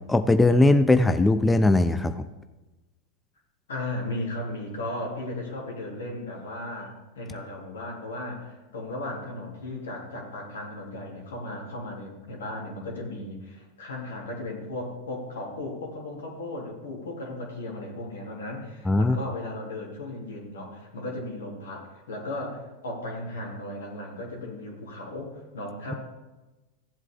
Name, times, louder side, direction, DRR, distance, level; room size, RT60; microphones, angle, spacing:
voice 1, 0.1-2.2 18.9-19.2, left 2 dB, 10° left, 10 dB, 0.5 m, -19 dB
voice 2, 3.7-26.0, left 1 dB, 85° left, -1 dB, 3.1 m, -36 dB
15.0 x 7.9 x 3.8 m, 1.1 s
hypercardioid pair, 105°, 0 cm